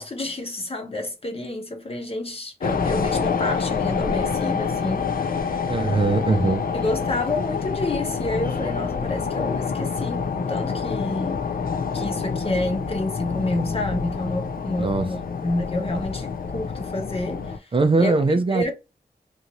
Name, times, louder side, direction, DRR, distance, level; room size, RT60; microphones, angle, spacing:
voice 1, 0.0-5.7 6.7-11.4 11.9-18.7, left 2 dB, 35° left, 1.0 m, -29 dB
sound 1, 2.6-17.6, left 5 dB, 60° left, 0.4 m, -27 dB
voice 2, 5.7-6.6 14.8-15.0 17.7-18.7, right 3 dB, 35° right, 0.4 m, -20 dB
2.7 x 2.6 x 2.9 m
wide cardioid pair, 70°, 16 cm